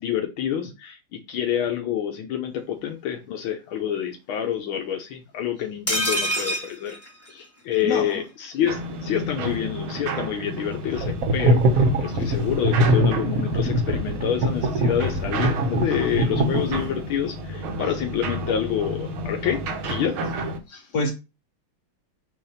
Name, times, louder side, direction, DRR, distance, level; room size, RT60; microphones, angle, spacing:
voice 1, 0.0-7.0 7.3-20.3, left 9 dB, 80° left, 1.6 m, -27 dB
sound 1, 5.9-7.8 8.1-8.2 8.5-8.6, equal, 10° left, 1.1 m, -27 dB
voice 2, 7.8-8.1 20.7-21.1, left 3 dB, 60° left, 1.5 m, -26 dB
sound 2, 8.7-20.6, equal, 80° right, 1.8 m, -31 dB
sound 3, 11.0-17.0, right 1 dB, 55° right, 1.0 m, -22 dB
6.7 x 2.8 x 5.6 m
omnidirectional pair, 2.3 m